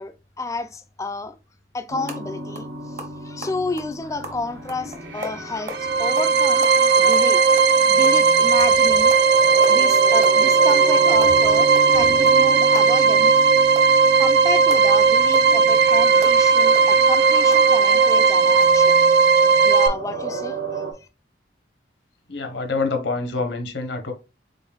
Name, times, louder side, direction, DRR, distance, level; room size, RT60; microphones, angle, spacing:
voice 1, 0.0-1.4 1.7-6.7 6.9-9.1 9.7-13.3 14.2-19.0 19.5-20.8, left 3 dB, 15° left, 0.3 m, -31 dB
sound 1, 1.9-20.9, right 3 dB, 85° right, 0.9 m, -34 dB
sound 2, 2.0-2.2 2.5-2.7 3.0-5.8 6.2-6.4 6.6-8.3 8.6-8.8 9.1-9.3 9.6-9.8 10.0-10.9 11.1-13.4 13.8-17.7 18.1-18.2 18.5-18.6, equal, 40° right, 0.8 m, -37 dB
sound 3, 5.7-19.9, right 5 dB, 70° right, 0.4 m, -16 dB
voice 2, 22.3-24.1, left 3 dB, 80° left, 0.9 m, -26 dB
3.9 x 3.8 x 2.3 m
head